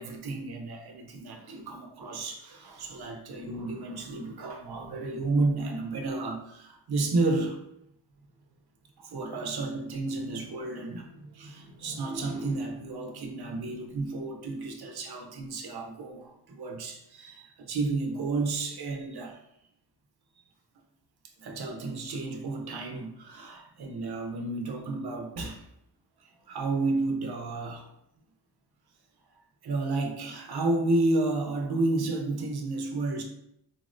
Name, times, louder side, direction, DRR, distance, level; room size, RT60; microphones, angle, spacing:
voice 1, 0.0-7.6 9.0-19.4 21.4-25.6 26.5-27.9 29.6-33.2, right 2 dB, 65° right, 0.6 m, -31 dB
3.9 x 2.1 x 2.5 m
wide cardioid pair, 105°, 42 cm